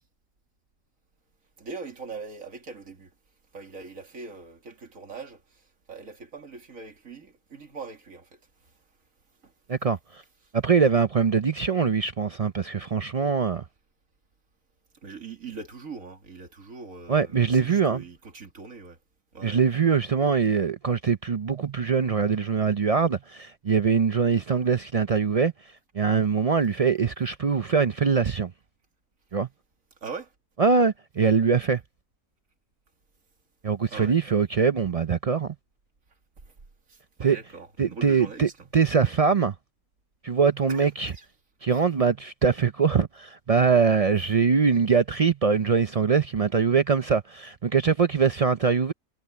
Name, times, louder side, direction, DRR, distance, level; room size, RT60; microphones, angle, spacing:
voice 1, 1.6-3.1 3.5-8.4 9.4-9.5 15.0-19.0 19.3-19.6 24.2-24.5 30.0-30.3 33.9-34.2 36.5-36.6 36.9-38.7 39.0-39.1 40.7-41.2 41.7-41.8, right 4 dB, 85° right, 2.7 m, -42 dB
voice 2, 9.7-10.2 10.5-13.6 17.1-18.0 19.4-28.5 29.3-29.5 30.6-31.8 33.6-35.5 37.2-37.4 37.8-39.5 40.2-41.1 41.6-48.9, right 5 dB, 55° right, 0.4 m, -23 dB
omnidirectional pair, 1.4 m